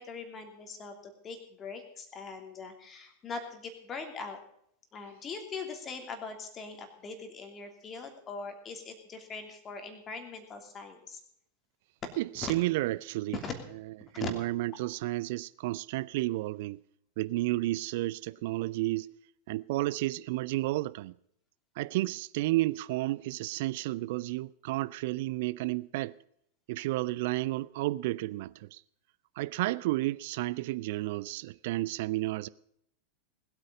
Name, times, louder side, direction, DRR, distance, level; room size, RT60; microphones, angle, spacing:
voice 1, 0.0-4.4 4.9-11.2 12.4-12.5 13.3-13.5 14.1-14.3, left 4 dB, 25° left, 2.9 m, -41 dB
voice 2, 12.2-13.4 14.1-16.8 17.2-19.1 19.5-21.2 21.8-26.2 26.7-28.8 29.4-32.5, right 18 dB, 50° right, 0.5 m, -31 dB
20.0 x 8.8 x 5.3 m
figure-of-eight pair, 90°, 0 cm